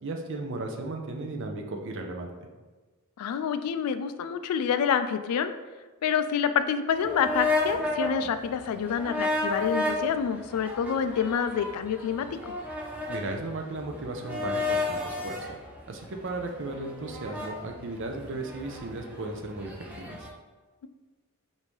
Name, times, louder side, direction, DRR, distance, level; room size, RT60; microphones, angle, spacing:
voice 1, 0.0-2.3 13.1-15.5 15.9-19.7 20.0-20.3, right 2 dB, 55° right, 3 dB, 0.5 m, -35 dB
voice 2, 3.2-5.5 6.0-12.5, left 7 dB, 85° left, 13 dB, 0.3 m, -27 dB
sound 1, 6.9-20.3, left 2 dB, 5° right, 0.4 m, -33 dB
5.1 x 2.7 x 3.1 m, 1.3 s
head